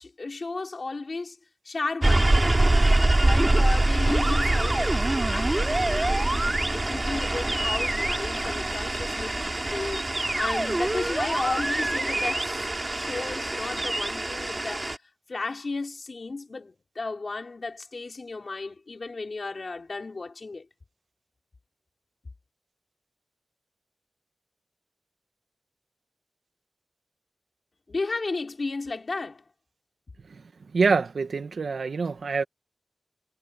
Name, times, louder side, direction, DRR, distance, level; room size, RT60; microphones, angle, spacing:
voice 1, 0.0-1.4 1.6-2.6 3.2-6.3 6.7-14.9 15.3-20.7 27.9-29.4, left 3 dB, 50° left, 3.3 m, -34 dB
sound 1, 2.0-15.0, right 2 dB, 25° right, 3.1 m, -24 dB
voice 2, 30.7-32.4, right 4 dB, 75° right, 1.4 m, -25 dB
wide cardioid pair, 105°, 0 cm